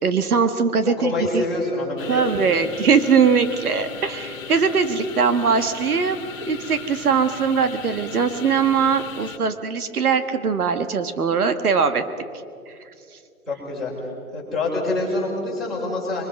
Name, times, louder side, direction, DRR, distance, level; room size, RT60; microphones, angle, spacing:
voice 1, 0.0-1.4 2.1-6.2 6.5-12.0 12.7-12.8, right 6 dB, 80° right, 9 dB, 1.6 m, -21 dB
voice 2, 0.8-2.3 13.5-13.9 14.3-16.3, left 2 dB, ahead, -9 dB, 4.7 m, -26 dB
sound 1, 2.0-9.4, left 7 dB, 65° left, 1.4 m, -38 dB
24.0 x 23.5 x 5.4 m, 2.4 s
hypercardioid pair, 165°, 44 cm